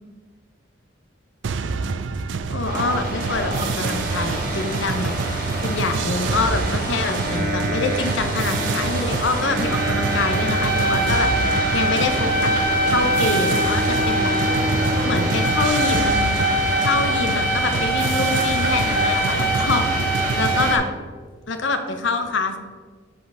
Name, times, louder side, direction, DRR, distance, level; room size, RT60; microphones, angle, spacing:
sound 1, 1.4-20.7, right 4 dB, 70° right, 0.4 m, -27 dB
voice 1, 2.5-5.1 5.6-12.5 12.9-14.3 14.8-16.4 16.8-20.8 21.5-22.6, left 3 dB, 70° left, 7 dB, 0.9 m, -25 dB
sound 2, 2.6-20.8, right 1 dB, 45° right, 1.8 m, -24 dB
Bowed string instrument, 11.7-16.4, right 1 dB, 20° right, 1.2 m, -30 dB
7.9 x 5.6 x 4.9 m, 1.5 s
head